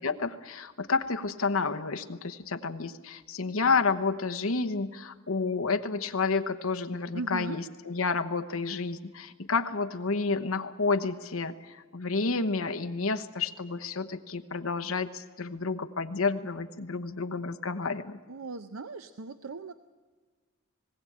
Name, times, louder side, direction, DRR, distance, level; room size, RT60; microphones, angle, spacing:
voice 1, 0.0-18.2, left 4 dB, 70° left, 9 dB, 1.0 m, -30 dB
voice 2, 7.1-7.6 18.3-19.7, right 3 dB, 70° right, 10 dB, 0.7 m, -38 dB
19.5 x 17.0 x 8.7 m, 1.4 s
head